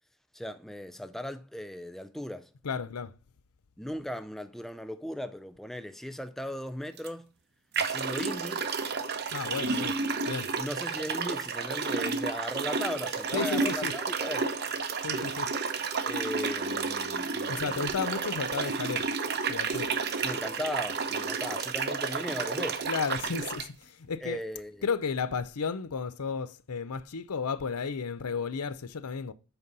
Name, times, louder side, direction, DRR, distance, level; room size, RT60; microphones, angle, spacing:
voice 1, 0.3-2.5 3.8-7.3 7.8-8.7 9.7-10.0 10.6-14.5 15.1-15.3 16.1-18.1 20.2-22.9 24.2-24.9, left 1 dB, ahead, 0.3 m, -37 dB
voice 2, 2.6-3.1 9.3-10.0 10.3-10.5 13.3-13.9 15.0-15.5 17.5-19.1 19.5-19.9 22.9-24.4 24.8-29.3, left 5 dB, 90° left, 0.6 m, -33 dB
sound 1, 7.0-7.1 7.7-23.7, right 4 dB, 45° right, 0.7 m, -31 dB
7.9 x 5.4 x 4.0 m
head